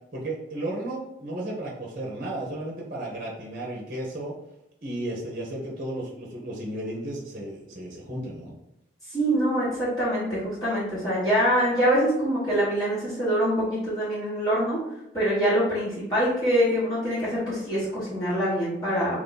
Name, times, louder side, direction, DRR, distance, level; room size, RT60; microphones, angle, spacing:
voice 1, 0.1-4.4 4.8-8.6, right 1 dB, 50° right, -3 dB, 0.9 m, -34 dB
voice 2, 9.1-14.8 15.1-19.2, equal, 20° left, -13 dB, 1.4 m, -24 dB
3.1 x 2.8 x 3.9 m, 0.84 s
head